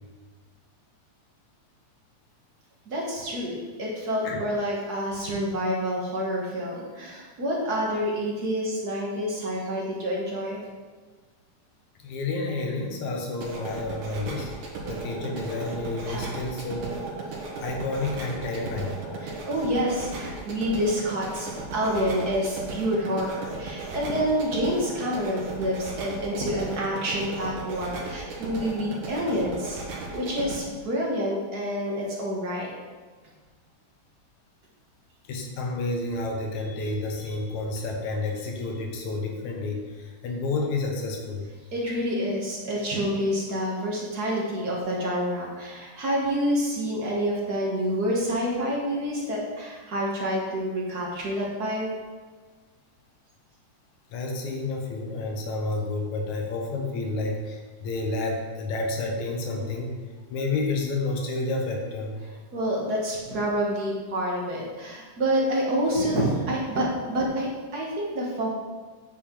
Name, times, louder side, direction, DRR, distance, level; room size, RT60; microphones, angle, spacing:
voice 1, 2.9-10.7 16.0-16.2 19.2-32.7 41.7-51.9 62.2-68.5, equal, 40° right, -4 dB, 1.4 m, -28 dB
voice 2, 12.0-14.5 14.9-17.0 17.6-19.0 35.3-41.5 54.1-59.9 60.3-62.1, left 2 dB, 70° left, 1 dB, 2.5 m, -30 dB
sound 1, 13.3-30.6, right 3 dB, 70° right, 2.6 m, -36 dB
8.6 x 6.8 x 3.9 m, 1.4 s
omnidirectional pair, 3.6 m